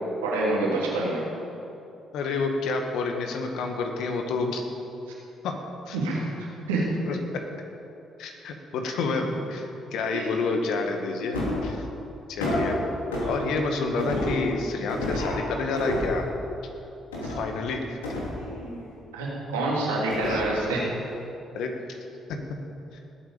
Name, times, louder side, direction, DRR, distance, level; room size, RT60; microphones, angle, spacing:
voice 1, 0.2-1.2 5.9-6.2 6.7-7.0 9.5-9.6 10.1-10.3 19.1-20.8, right 2 dB, 85° right, -5 dB, 3.1 m, -26 dB
voice 2, 2.1-4.6 5.4-6.0 7.0-7.4 8.2-11.8 12.3-12.9 13.3-16.3 17.3-18.0 20.2-20.4 21.5-21.7 22.3-22.6, left 3 dB, 65° left, 4 dB, 1.6 m, -29 dB
sound 1, 11.3-11.7 12.4-12.7 13.1-13.4 14.0-14.4 14.9-15.4 15.8-16.2 17.1-17.5 18.0-18.8 20.1-20.6 20.9-21.0, left 1 dB, 85° left, 2.8 m, -29 dB
19.5 x 8.9 x 5.2 m, 2.7 s
hypercardioid pair, 45°, 0 cm